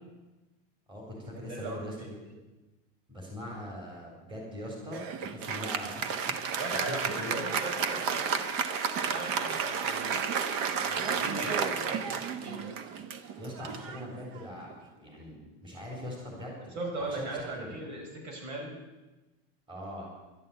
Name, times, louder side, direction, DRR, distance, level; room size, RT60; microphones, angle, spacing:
voice 1, 0.9-2.4 3.1-6.1 6.4-6.6 6.9-7.4 11.3-11.5 13.4-14.7 15.0-16.6 17.0-17.8 19.7-20.1, equal, 15° right, -1 dB, 3.8 m, -42 dB
voice 2, 1.5-2.3 6.6-8.4 9.0-10.2 10.8-12.8 16.7-18.7, right 2 dB, 85° right, 0 dB, 5.7 m, -38 dB
Applause, 4.9-14.7, right 6 dB, 45° right, 1.1 m, -32 dB
12.0 x 11.0 x 8.2 m, 1.1 s
supercardioid pair, 165°, 31 cm